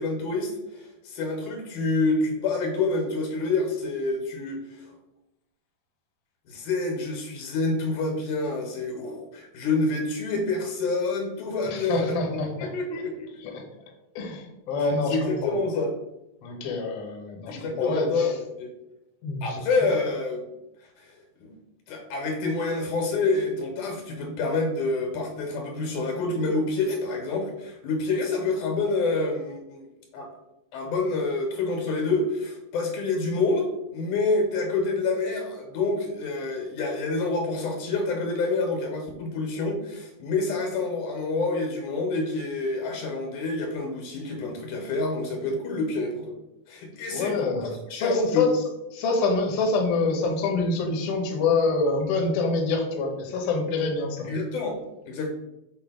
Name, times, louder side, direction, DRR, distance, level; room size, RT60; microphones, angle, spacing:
voice 1, 0.0-4.9 6.5-12.1 12.6-13.6 14.9-15.9 17.5-18.7 19.4-20.5 21.0-21.5 21.9-29.9 30.1-30.3 30.7-46.3 46.7-47.4 47.9-48.5 54.2-55.3, left 3 dB, 80° left, 2 dB, 2.6 m, -27 dB
voice 2, 11.7-12.5 13.4-13.6 14.2-15.5 16.4-18.3 19.2-19.6 47.1-48.6 48.9-54.3, left 3 dB, 65° left, 1 dB, 1.8 m, -26 dB
6.5 x 2.8 x 5.1 m, 0.91 s
omnidirectional pair, 3.5 m